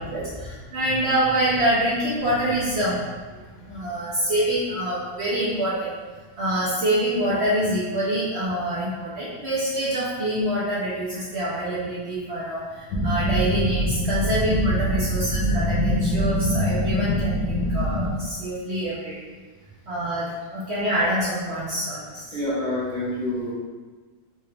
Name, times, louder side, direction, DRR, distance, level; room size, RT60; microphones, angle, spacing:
voice 1, 0.0-3.0 3.6-5.9 6.4-19.1 19.9-22.4, right 1 dB, 70° right, -8 dB, 0.6 m, -26 dB
sound 1, 12.9-18.1, equal, 70° left, 1.1 m, -24 dB
voice 2, 22.3-23.5, left 1 dB, 35° left, -10 dB, 0.8 m, -27 dB
4.0 x 2.4 x 3.2 m, 1.4 s
omnidirectional pair, 2.0 m